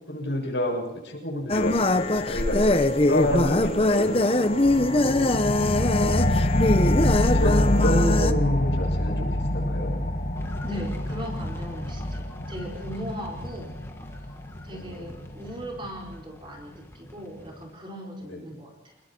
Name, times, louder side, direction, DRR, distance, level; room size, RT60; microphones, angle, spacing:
voice 1, 0.1-5.8 6.6-9.9 14.7-15.0 18.3-18.4, left 1 dB, 80° left, -1 dB, 6.8 m, -29 dB
sound 1, 1.5-8.3, left 2 dB, 30° left, 0.9 m, -22 dB
sound 2, 4.6-15.7, left 1 dB, 50° left, 1.7 m, -26 dB
voice 2, 5.9-6.3 10.6-13.8 14.2-14.3 14.6-19.0, equal, 25° right, -2 dB, 4.6 m, -38 dB
sound 3, 10.3-17.7, equal, 15° left, 1.4 m, -42 dB
28.5 x 20.5 x 4.5 m, 0.93 s
head